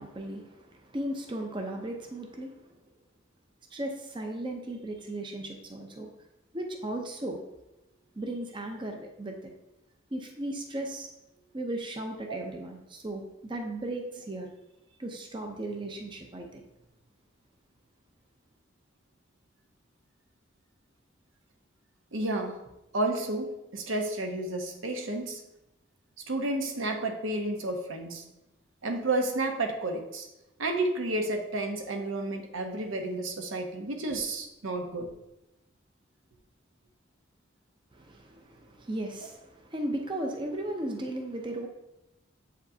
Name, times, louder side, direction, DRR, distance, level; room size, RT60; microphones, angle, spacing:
voice 1, 0.0-2.7 3.7-6.1 6.5-7.4 8.2-9.5 10.1-11.1 11.5-14.5 15.0-16.6 37.9-41.7, right 1 dB, 25° right, 3 dB, 0.5 m, -36 dB
voice 2, 22.1-22.6 22.9-25.4 26.3-28.2 28.8-30.3 30.6-35.1, right 2 dB, 80° right, 4 dB, 0.8 m, -31 dB
7.6 x 5.1 x 2.7 m, 0.93 s
head